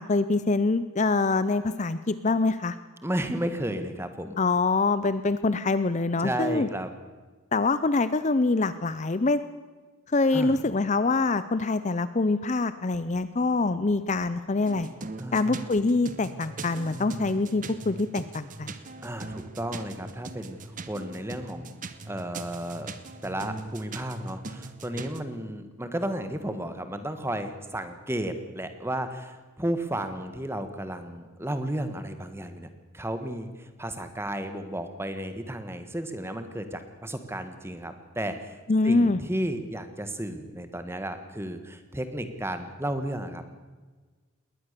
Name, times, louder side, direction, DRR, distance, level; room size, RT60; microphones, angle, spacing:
voice 1, 0.0-2.8 4.4-6.7 7.5-9.4 10.1-14.9 15.3-18.8 38.7-39.2, left 3 dB, 35° left, 14 dB, 0.6 m, -25 dB
voice 2, 3.0-4.4 6.2-6.9 10.3-10.6 15.2-15.8 19.0-21.8 22.1-22.9 23.2-32.7 32.9-38.6 38.8-43.6, right 1 dB, 10° right, 9 dB, 1.5 m, -33 dB
sound 1, 14.7-25.2, right 3 dB, 35° right, 1.1 m, -41 dB
21.0 x 18.5 x 6.8 m, 1.4 s
head